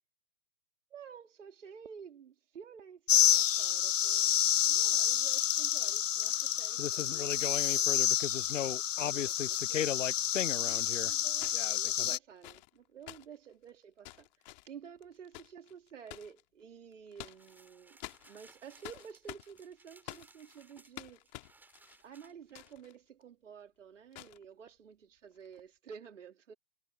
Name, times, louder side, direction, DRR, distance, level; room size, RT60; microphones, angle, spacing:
voice 1, 0.9-8.5 9.0-10.0 10.6-18.0 18.3-21.6 22.0-26.5, right 7 dB, 55° right, 4.0 m, -52 dB
sound 1, 3.1-12.2, left 10 dB, 55° left, 0.5 m, -29 dB
sound 2, 9.5-9.6 11.3-16.4 16.9-17.7 18.0-23.0 23.2-23.3 24.1-24.4 25.4-25.6, left 20 dB, 30° left, 2.5 m, -50 dB
sound 3, 17.3-22.7, right 3 dB, 5° right, 3.6 m, -62 dB
figure-of-eight pair, 130°, 45 cm